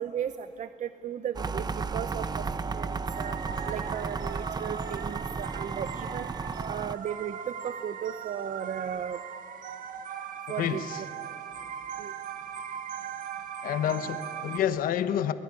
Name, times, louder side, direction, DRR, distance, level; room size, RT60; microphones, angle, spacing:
voice 1, 0.0-3.3 3.7-6.3 6.7-9.2 10.5-11.1 12.0-12.1, right 9 dB, 60° right, 0.8 m, -36 dB
sound 1, 1.4-7.0, right 4 dB, 30° right, 0.7 m, -33 dB
sound 2, 3.1-14.6, right 8 dB, 75° right, 1.5 m, -39 dB
voice 2, 10.6-11.0 13.6-15.3, left 10 dB, 90° left, 1.2 m, -28 dB
25.0 x 20.5 x 9.9 m
cardioid pair, 115°, 14 cm